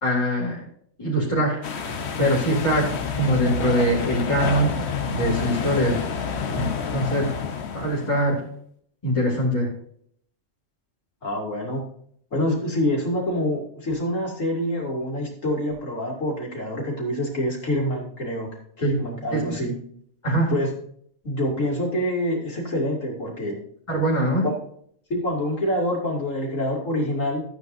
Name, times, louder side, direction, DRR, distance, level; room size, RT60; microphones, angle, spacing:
voice 1, 0.0-0.6 1.0-1.6 2.2-2.9 3.2-6.0 6.6-7.3 7.7-8.4 9.0-9.7 18.8-19.0 19.3-19.6 20.2-20.5 23.9-24.5, equal, 25° left, -6 dB, 2.7 m, -23 dB
sound 1, 1.6-8.3, left 6 dB, 60° left, 1.1 m, -29 dB
voice 2, 11.2-11.8 12.3-18.5 18.8-19.7 20.5-20.7 21.2-23.6 24.4-24.6 25.1-27.4, left 1 dB, 80° left, -2 dB, 3.1 m, -26 dB
14.0 x 8.7 x 2.7 m, 0.65 s
omnidirectional pair, 1.3 m